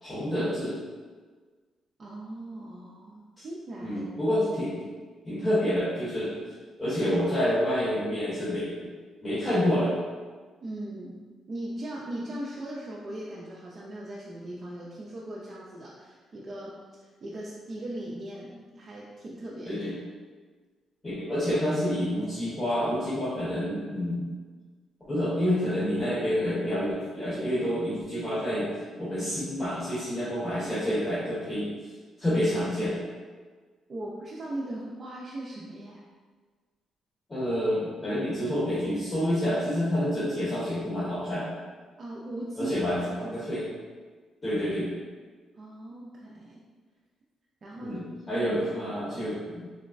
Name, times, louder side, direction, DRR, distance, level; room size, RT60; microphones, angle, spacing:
voice 1, 0.0-0.8 3.4-3.5 3.8-4.8 5.2-6.4 6.8-8.7 9.2-9.9 19.6-19.9 21.0-24.3 25.1-28.7 29.0-31.7 32.2-33.0 37.3-41.5 42.6-43.6 44.4-44.9 47.8-49.6, equal, 25° left, -12 dB, 1.2 m, -28 dB
voice 2, 2.0-4.1 10.6-11.2 11.5-19.8 33.9-36.0 42.0-42.8 43.2-43.3 45.6-46.6 47.6-48.0 48.3-48.7, right 1 dB, 45° right, -5 dB, 0.4 m, -39 dB
3.8 x 2.1 x 2.5 m, 1.4 s
cardioid pair, 90°, 0 cm